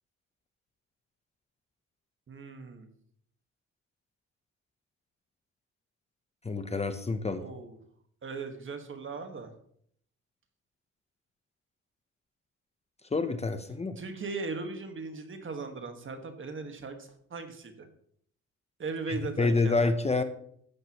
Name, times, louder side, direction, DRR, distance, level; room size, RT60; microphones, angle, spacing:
voice 1, 2.3-2.9 7.4-7.8 8.2-9.5 14.0-17.9 18.8-19.8, right 4 dB, 40° right, 6 dB, 1.6 m, -38 dB
voice 2, 6.4-7.4 13.1-14.0 19.1-20.2, left 3 dB, 20° left, 9 dB, 0.8 m, -28 dB
13.5 x 7.9 x 3.0 m, 0.65 s
cardioid pair, 90°, 30 cm